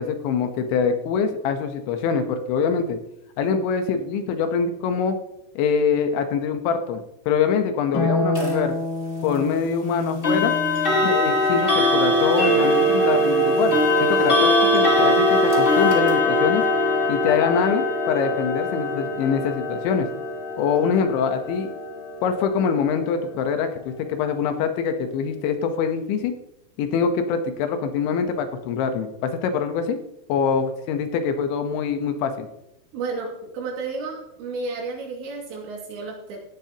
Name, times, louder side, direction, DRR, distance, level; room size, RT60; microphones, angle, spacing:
voice 1, 0.0-3.0 3.4-5.2 5.6-8.7 9.2-10.5 11.0-16.6 17.1-20.1 20.6-21.7 22.2-26.3 26.8-30.0 30.3-32.5, left 6 dB, 85° left, 7 dB, 3.4 m, -24 dB
Harp, 7.9-14.5 16.1-17.1, left 2 dB, 60° left, 3.5 m, -31 dB
sound 1, 8.3-8.6 10.2-23.1, left 1 dB, 35° left, 0.8 m, -21 dB
voice 2, 32.9-36.4, right 3 dB, 75° right, 0 dB, 4.6 m, -32 dB
16.0 x 10.5 x 3.0 m, 0.83 s
omnidirectional pair, 5.2 m